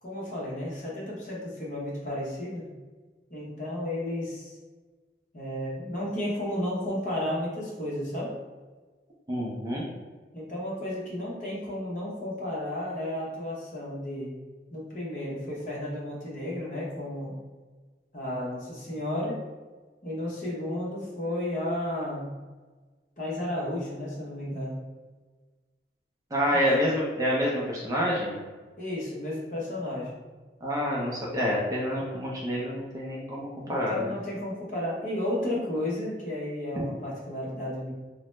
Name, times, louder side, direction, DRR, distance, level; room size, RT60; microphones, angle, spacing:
voice 1, 0.0-2.7 3.3-4.6 5.3-8.3 10.3-14.3 14.7-17.4 18.1-19.4 20.0-22.2 23.2-24.8 26.5-26.7 28.8-30.1 33.6-37.9, left 1 dB, 45° left, -5 dB, 0.8 m, -33 dB
voice 2, 9.3-9.9 26.3-28.4 30.6-34.1, equal, 20° right, -5 dB, 0.4 m, -27 dB
2.8 x 2.1 x 3.1 m, 1.3 s
head